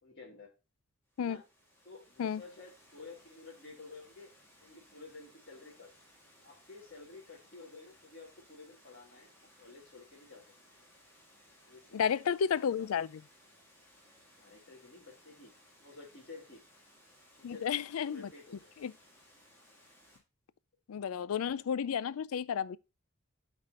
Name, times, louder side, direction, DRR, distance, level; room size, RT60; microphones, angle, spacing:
voice 1, 0.0-0.5 1.2-1.4 1.8-4.3 4.6-5.9 6.4-9.3 9.6-10.4 11.7-12.2 12.6-12.9 14.4-15.5 15.8-16.6 17.4-17.6 17.9-18.7, left 3 dB, 45° left, 2.1 m, -52 dB
Water, 1.1-20.2, left 1 dB, 10° left, 2.1 m, -62 dB
voice 2, 11.9-13.1 17.4-18.3 18.8-18.9 20.9-22.8, left 7 dB, 85° left, 0.4 m, -32 dB
12.0 x 4.2 x 2.4 m
head